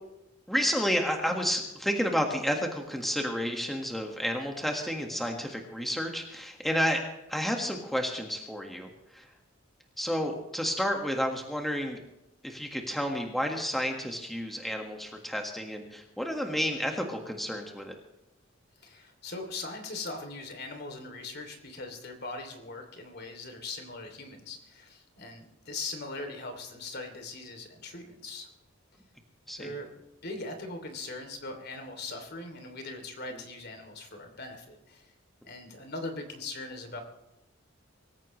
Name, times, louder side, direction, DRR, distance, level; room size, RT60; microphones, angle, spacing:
voice 1, 0.5-7.0 7.3-9.3 10.0-12.0 12.4-17.9 29.5-29.7, equal, ahead, 2 dB, 1.7 m, -31 dB
voice 2, 18.8-28.5 29.6-29.9 30.2-35.1 35.4-37.0, left 2 dB, 55° left, 5 dB, 2.9 m, -40 dB
24.5 x 15.0 x 3.2 m, 0.93 s
head